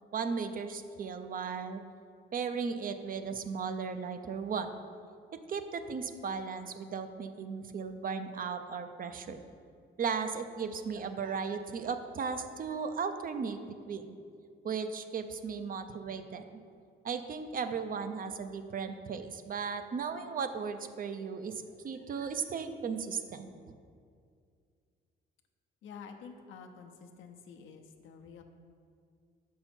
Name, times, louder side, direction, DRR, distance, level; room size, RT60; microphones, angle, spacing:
voice 1, 0.1-1.8 2.3-4.7 5.3-9.4 10.0-13.6 13.9-14.2 14.6-16.6 17.0-23.5, right 5 dB, 45° right, 9 dB, 0.5 m, -36 dB
voice 2, 25.8-28.4, left 6 dB, 80° left, 4 dB, 0.8 m, -49 dB
6.8 x 5.6 x 4.4 m, 2.3 s
cardioid pair, 90°, 20 cm